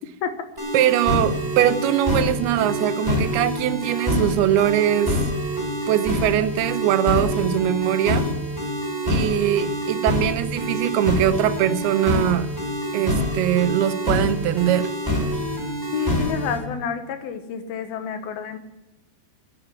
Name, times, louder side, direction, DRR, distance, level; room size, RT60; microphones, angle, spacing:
sound 1, 0.6-16.6, equal, 5° right, 3.4 m, -26 dB
voice 1, 0.7-5.2 5.9-8.3 9.0-12.5 12.9-14.9, right 11 dB, 80° right, 13 dB, 2.6 m, -21 dB
voice 2, 15.9-18.6, left 7 dB, 75° left, 8 dB, 3.0 m, -29 dB
12.0 x 8.4 x 9.6 m, 0.95 s
omnidirectional pair, 4.6 m